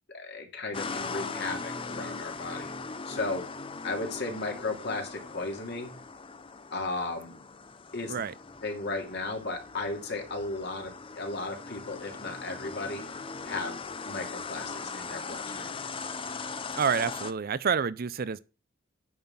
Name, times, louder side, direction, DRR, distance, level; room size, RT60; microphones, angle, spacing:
voice 1, 0.1-2.7 3.0-3.5 3.8-5.9 6.7-7.4 7.9-8.2 8.6-13.0 13.4-13.8 14.0-15.7, left 3 dB, 55° left, 2.7 m, -35 dB
sound 1, 0.7-17.3, left 4 dB, 25° left, 0.6 m, -40 dB
voice 2, 16.8-18.4, right 6 dB, 45° right, 0.5 m, -28 dB
9.4 x 5.7 x 7.3 m
head